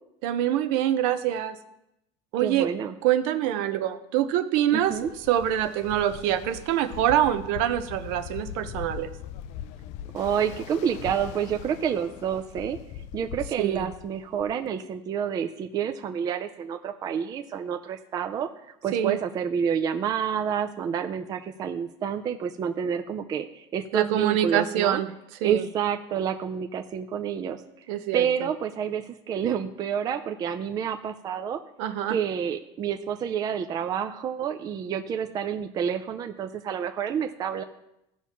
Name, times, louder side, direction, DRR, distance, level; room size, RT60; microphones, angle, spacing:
voice 1, 0.2-1.6 2.3-2.7 3.0-5.0 5.3-9.1 13.6-13.9 18.9-19.2 23.9-25.1 25.4-25.6 27.9-28.3 31.8-32.2, right 11 dB, 70° right, 9 dB, 0.8 m, -25 dB
voice 2, 2.4-2.9 4.7-5.1 10.1-12.8 13.1-18.5 18.8-25.0 25.4-27.6 28.1-31.6 32.1-37.6, right 8 dB, 25° right, 6 dB, 0.5 m, -29 dB
Ocean, 4.8-14.7, left 10 dB, 55° left, 0.4 m, -41 dB
16.0 x 5.8 x 3.0 m, 0.84 s
cardioid pair, 160°, 14 cm